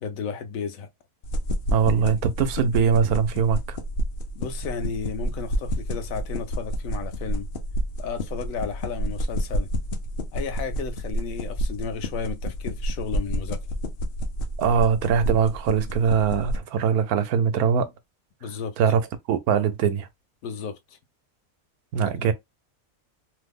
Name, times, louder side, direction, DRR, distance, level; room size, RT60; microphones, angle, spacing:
voice 1, 0.0-0.9 4.3-7.5 8.0-9.7 10.3-13.6 18.4-18.8 20.4-20.8 22.0-22.3, left 6 dB, 70° left, 1.0 m, -33 dB
sound 1, 1.2-16.6, equal, 55° left, 0.6 m, -29 dB
voice 2, 1.7-3.8 14.6-17.9 18.8-19.0 19.3-20.1 21.9-22.3, right 7 dB, 90° right, 1.1 m, -22 dB
3.0 x 2.0 x 3.4 m
omnidirectional pair, 1.5 m